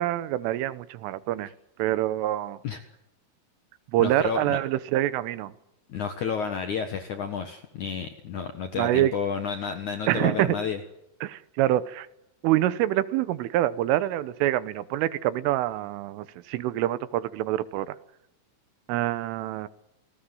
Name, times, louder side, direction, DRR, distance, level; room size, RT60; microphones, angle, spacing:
voice 1, 0.0-1.5 1.8-2.6 3.9-5.5 8.8-9.1 10.1-10.6 11.2-12.1 12.4-18.0 18.9-19.7, right 14 dB, 85° right, 16 dB, 3.6 m, -26 dB
voice 2, 4.0-4.6 5.9-10.8, left 6 dB, 65° left, 7 dB, 1.9 m, -31 dB
29.0 x 19.0 x 7.8 m, 0.85 s
omnidirectional pair, 5.6 m